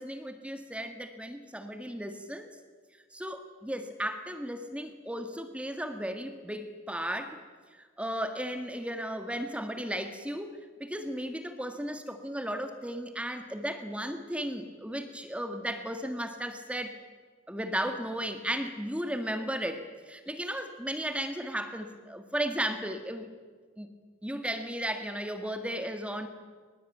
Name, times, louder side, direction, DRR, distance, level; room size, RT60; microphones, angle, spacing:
voice 1, 0.0-2.5 3.1-7.4 7.8-17.0 17.5-23.3 23.8-23.9 24.2-26.3, equal, 5° right, 7 dB, 1.6 m, -35 dB
22.5 x 21.0 x 9.1 m, 1.5 s
head